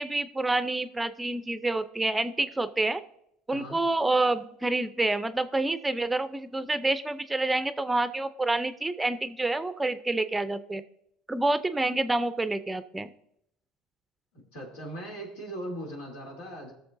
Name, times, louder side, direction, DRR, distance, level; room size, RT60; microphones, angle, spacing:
voice 1, 0.0-3.0 3.5-10.8 11.3-13.1, right 2 dB, 10° right, 12 dB, 0.5 m, -28 dB
voice 2, 14.5-16.7, right 1 dB, 85° left, -2 dB, 3.0 m, -39 dB
19.0 x 6.7 x 2.6 m, 0.76 s
supercardioid pair, 95°, 0 cm